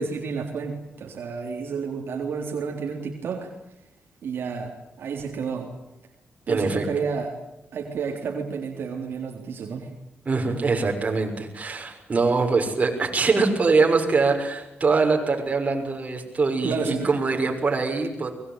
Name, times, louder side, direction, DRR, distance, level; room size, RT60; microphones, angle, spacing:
voice 1, 0.0-3.5 4.2-5.7 6.5-7.4 7.7-9.9 16.6-17.1, right 5 dB, 75° right, 2 dB, 3.8 m, -30 dB
voice 2, 6.5-6.9 10.2-18.3, right 4 dB, 40° right, 2 dB, 6.4 m, -23 dB
24.5 x 21.5 x 9.3 m, 0.86 s
cardioid pair, 95°, 4 cm